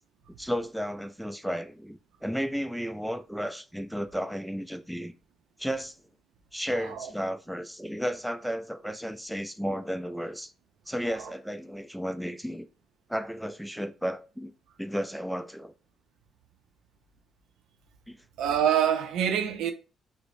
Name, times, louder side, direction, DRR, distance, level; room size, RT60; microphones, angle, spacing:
voice 1, 0.4-5.1 5.6-6.0 6.5-10.5 10.9-12.7 13.1-14.5 14.8-15.7 18.1-18.2, equal, ahead, 0.3 m, -33 dB
voice 2, 6.7-7.1 11.1-11.3 18.4-19.7, right 9 dB, 85° right, 0.5 m, -26 dB
4.8 x 2.0 x 2.6 m
cardioid pair, 90°, 0 cm